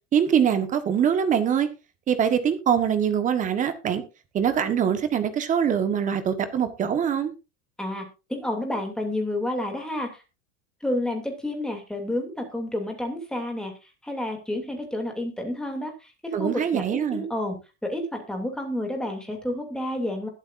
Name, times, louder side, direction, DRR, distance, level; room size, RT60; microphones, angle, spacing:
voice 1, 0.1-1.7 2.1-4.0 4.3-7.3 16.3-17.2, right 8 dB, 25° right, 1.4 m, -23 dB
voice 2, 7.8-10.2 10.8-17.5 17.8-20.3, left 1 dB, ahead, 2.8 m, -30 dB
21.0 x 8.2 x 2.6 m
supercardioid pair, 165°, 33 cm